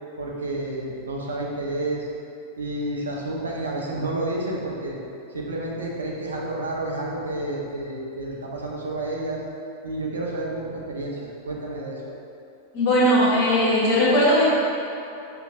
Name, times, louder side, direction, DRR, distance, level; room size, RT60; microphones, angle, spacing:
voice 1, 0.2-2.1 2.6-5.0 5.3-9.4 9.8-12.2, right 2 dB, 70° right, -2 dB, 0.6 m, -30 dB
voice 2, 12.7-14.5, equal, 45° left, -7 dB, 1.2 m, -18 dB
4.8 x 3.0 x 2.5 m, 2.6 s
figure-of-eight pair, 90°, 0 cm